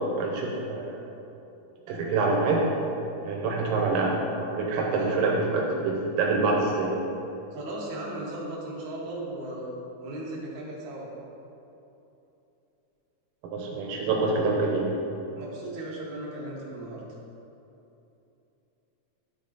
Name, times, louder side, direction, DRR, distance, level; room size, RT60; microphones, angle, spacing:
voice 1, 0.2-1.1 1.9-2.6 3.2-6.9 13.5-14.9, right 3 dB, 90° right, -1 dB, 2.4 m, -26 dB
voice 2, 7.5-9.7 10.0-11.1 15.4-17.0, right 1 dB, 65° right, -5 dB, 2.6 m, -36 dB
11.5 x 3.9 x 3.9 m, 2.9 s
omnidirectional pair, 3.7 m